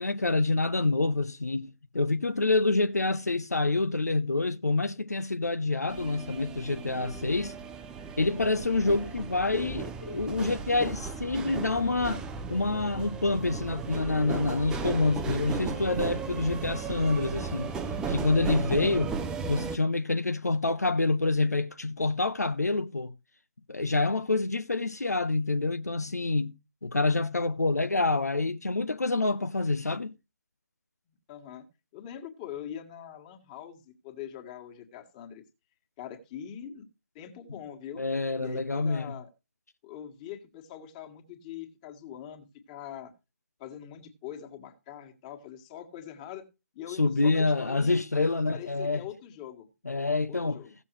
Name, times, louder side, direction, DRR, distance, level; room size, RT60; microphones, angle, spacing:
voice 1, 0.0-7.6 8.2-17.7 18.1-19.2 19.5-23.1 23.7-26.5 26.8-30.1 38.0-39.1 46.9-49.0 49.8-50.6, left 3 dB, 75° left, 0.7 m, -27 dB
sound 1, 5.9-19.8, right 5 dB, 10° right, 0.6 m, -35 dB
voice 2, 31.3-31.6 31.9-35.4 36.0-36.9 37.1-38.0 38.4-39.3 39.8-43.1 43.6-46.5 46.7-48.0 48.5-49.7 50.3-50.8, left 10 dB, 25° left, 1.9 m, -43 dB
16.5 x 6.9 x 3.2 m
figure-of-eight pair, 140°, 9 cm